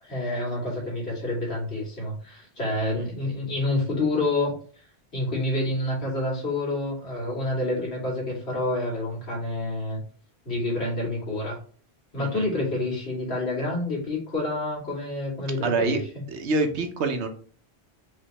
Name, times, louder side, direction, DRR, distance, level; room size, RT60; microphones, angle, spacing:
voice 1, 0.0-4.5 5.1-10.0 10.4-11.6 12.1-16.0, left 2 dB, 75° left, -5 dB, 2.6 m, -28 dB
voice 2, 15.6-16.0 16.3-17.3, right 3 dB, 90° right, 6 dB, 1.1 m, -26 dB
5.0 x 3.4 x 2.9 m, 0.44 s
omnidirectional pair, 1.1 m